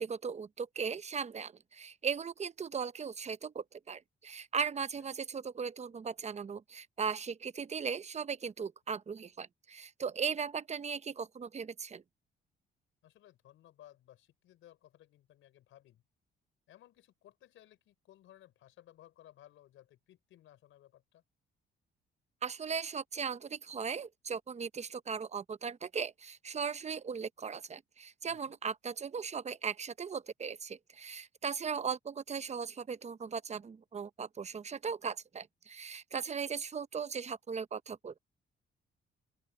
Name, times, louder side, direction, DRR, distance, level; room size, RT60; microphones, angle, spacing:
voice 1, 0.0-12.0 22.4-38.2, right 6 dB, 35° right, 0.9 m, -38 dB
voice 2, 13.0-16.0 16.7-21.2 28.3-28.6, left 13 dB, 80° left, 4.9 m, -60 dB
open air
cardioid pair, 90°, 20 cm